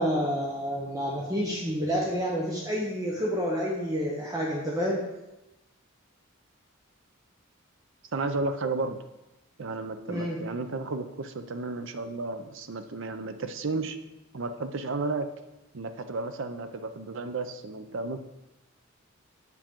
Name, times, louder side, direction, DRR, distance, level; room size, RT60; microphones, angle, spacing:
voice 1, 0.0-5.0 10.1-10.4, equal, 15° right, -3 dB, 0.8 m, -29 dB
voice 2, 8.1-9.0 9.6-14.0 14.3-15.3 15.7-18.2, right 3 dB, 60° right, 9 dB, 0.5 m, -33 dB
7.5 x 6.2 x 3.7 m, 0.97 s
head